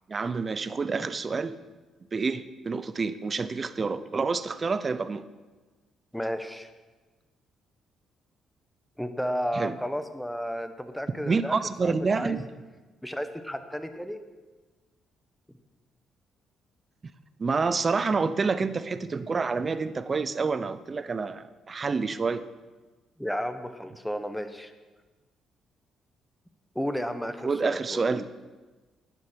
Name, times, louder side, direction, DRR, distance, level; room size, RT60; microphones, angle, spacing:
voice 1, 0.1-1.5 2.1-5.2 9.5-9.8 11.3-12.5 17.4-22.4 27.4-28.3, right 4 dB, 35° right, 13 dB, 0.6 m, -28 dB
voice 2, 6.1-6.7 9.0-11.5 11.8-12.4 13.0-14.2 23.2-24.7 26.7-28.2, equal, 5° left, 9 dB, 1.0 m, -33 dB
10.5 x 9.9 x 6.2 m, 1.3 s
cardioid pair, 90°, 0 cm